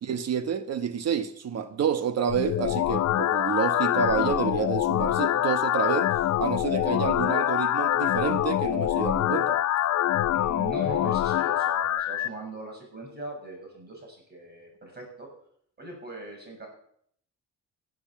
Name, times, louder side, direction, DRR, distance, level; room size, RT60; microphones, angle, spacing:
voice 1, 0.0-6.1 6.4-9.6, right 7 dB, 55° right, 1.2 m, -29 dB
sound 1, 2.3-12.3, left 12 dB, 60° left, 0.7 m, -25 dB
voice 2, 10.3-15.3 15.8-16.7, right 1 dB, 35° right, 7.5 m, -39 dB
16.0 x 8.1 x 7.3 m
cardioid pair, 90°, 30 cm